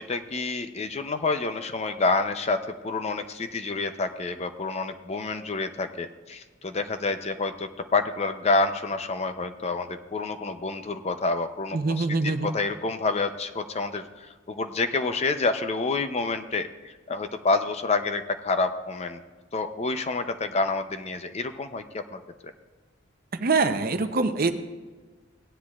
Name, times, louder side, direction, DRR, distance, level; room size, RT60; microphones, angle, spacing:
voice 1, 0.0-19.2 19.5-22.2, left 3 dB, 30° left, 8 dB, 0.6 m, -28 dB
voice 2, 11.7-12.5 23.3-24.5, right 3 dB, 45° right, 9 dB, 0.6 m, -24 dB
17.5 x 10.0 x 2.4 m, 1.3 s
head